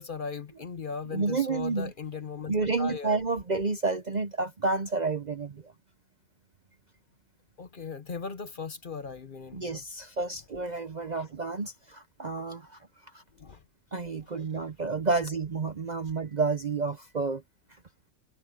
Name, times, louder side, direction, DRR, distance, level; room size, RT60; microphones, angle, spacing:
voice 1, 0.0-3.2 7.6-9.8 13.4-13.6, left 5 dB, 45° left, 0.9 m, -38 dB
voice 2, 1.1-1.9 2.5-5.7 9.5-12.8 13.1-13.2 13.9-17.4, right 4 dB, 40° right, 0.7 m, -30 dB
omnidirectional pair, 1.4 m